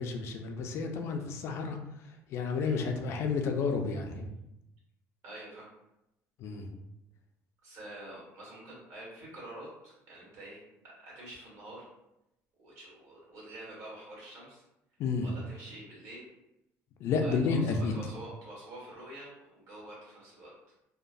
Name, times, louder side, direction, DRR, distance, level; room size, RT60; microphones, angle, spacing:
voice 1, 0.0-4.3 6.4-6.8 15.0-15.3 17.0-17.9, left 4 dB, 55° left, 4 dB, 0.3 m, -31 dB
voice 2, 5.2-5.7 7.6-11.9 12.6-14.6 15.2-16.3 17.2-20.5, right 1 dB, 60° right, -4 dB, 1.5 m, -47 dB
3.0 x 2.0 x 2.5 m, 0.88 s
cardioid pair, 150°, 6 cm